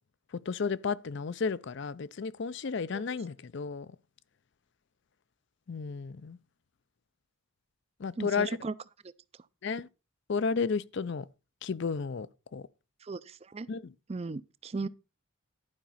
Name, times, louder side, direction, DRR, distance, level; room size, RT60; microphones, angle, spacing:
voice 1, 0.5-3.9 5.7-6.4 8.0-8.6 9.6-9.9 10.3-11.3 11.6-12.3 12.5-12.6 13.7-13.9 14.8-14.9, left 5 dB, 55° left, 0.4 m, -32 dB
voice 2, 8.2-8.7 13.1-13.7 14.1-14.9, right 3 dB, 30° right, 0.4 m, -36 dB
12.0 x 5.1 x 5.6 m
head